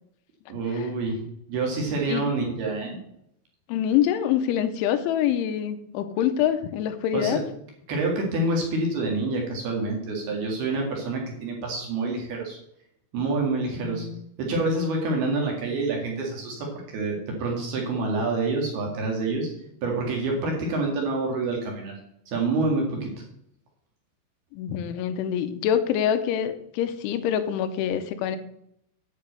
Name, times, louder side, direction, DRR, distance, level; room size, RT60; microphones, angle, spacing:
voice 1, 0.5-1.2 1.5-3.0 7.1-7.4 7.9-12.6 13.1-14.1 14.4-19.5 19.8-21.9 22.3-23.1, right 3 dB, 60° right, 0 dB, 3.5 m, -27 dB
voice 2, 3.7-7.4 13.8-14.3 24.5-28.4, left 10 dB, 85° left, 10 dB, 3.0 m, -25 dB
9.6 x 6.1 x 8.0 m, 0.74 s
omnidirectional pair, 5.8 m